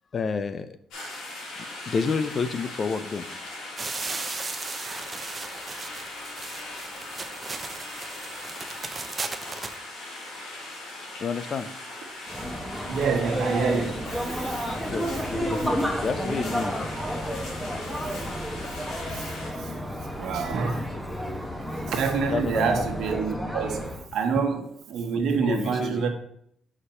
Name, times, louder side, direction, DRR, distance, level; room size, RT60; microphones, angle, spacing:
voice 1, 0.1-0.8 1.9-3.3 11.2-11.7 14.9-16.8 22.3-22.8 25.3-26.0, left 5 dB, 45° left, 0.5 m, -29 dB
sound 1, 0.9-19.5, left 2 dB, 85° left, 2.7 m, -39 dB
sound 2, 3.8-9.8, right 4 dB, 30° right, 0.6 m, -36 dB
sound 3, 12.3-24.0, equal, ahead, 1.2 m, -31 dB
voice 2, 12.9-14.6 19.1-19.3 19.6-19.7 20.2-20.9 21.8-26.1, right 5 dB, 75° right, 1.1 m, -27 dB
5.0 x 4.1 x 5.6 m
cardioid pair, 90°, 0 cm